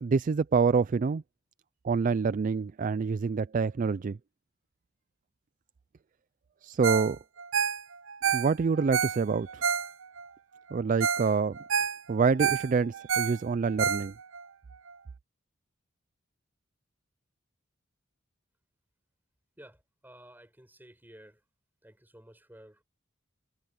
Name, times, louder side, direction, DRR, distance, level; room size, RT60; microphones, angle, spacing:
voice 1, 0.0-1.2 1.8-4.2 6.6-7.2 8.3-9.6 10.7-11.6 12.1-14.1, right 5 dB, 40° right, 0.4 m, -26 dB
Ringtone, 6.8-7.1 7.4-10.3 10.7-10.8 11.0-11.3 11.6-14.4 14.9-15.0, right 7 dB, 80° right, 0.7 m, -29 dB
voice 2, 19.6-21.4 21.8-22.8, right 1 dB, 10° right, 7.7 m, -53 dB
head